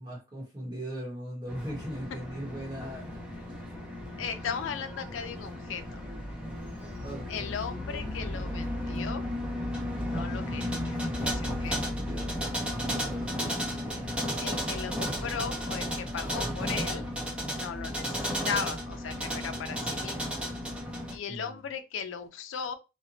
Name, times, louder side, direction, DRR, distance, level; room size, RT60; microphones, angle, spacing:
voice 1, 0.0-3.8 7.0-7.7 11.2-12.4 12.7-14.2 21.3-21.6, right 1 dB, 25° right, 0.9 m, -41 dB
sound 1, 1.5-21.2, equal, 5° right, 0.7 m, -34 dB
voice 2, 4.2-6.0 7.3-9.2 10.1-11.9 14.4-17.1 17.5-20.4 21.1-22.8, left 6 dB, 80° left, 0.4 m, -37 dB
2.9 x 2.1 x 2.6 m
head